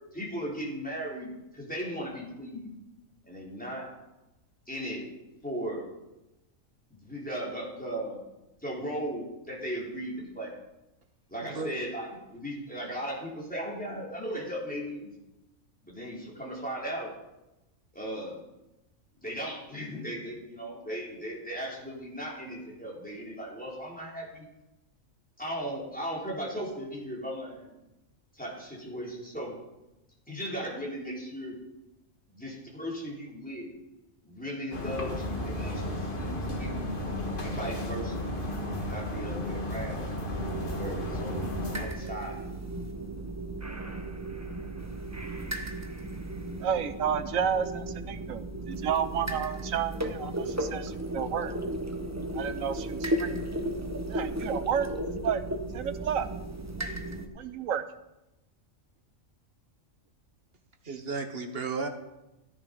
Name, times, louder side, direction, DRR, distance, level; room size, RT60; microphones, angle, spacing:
voice 1, 0.1-2.7 3.2-3.9 4.7-5.1 5.4-5.8 6.9-8.2 8.6-10.5 11.3-15.1 15.8-17.1 17.9-18.4 19.2-24.5 25.4-27.7 28.3-29.5 30.3-31.6 32.3-33.7 34.2-36.9 37.4-38.3 38.8-40.1 40.6-42.5, equal, 5° left, -4 dB, 4.1 m, -37 dB
voice 2, 11.4-11.7 60.8-61.9, right 4 dB, 50° right, 5 dB, 1.6 m, -34 dB
sound 1, 34.7-41.8, left 1 dB, 40° left, 1.9 m, -33 dB
sound 2, 40.3-57.3, right 1 dB, 15° right, 1.1 m, -35 dB
voice 3, 46.6-51.5 52.3-53.4 54.1-54.9 55.2-55.4 55.7-56.3 56.8-56.9 57.4-57.8, right 8 dB, 85° right, 10 dB, 1.3 m, -31 dB
15.0 x 10.5 x 5.4 m, 0.96 s
omnidirectional pair, 1.4 m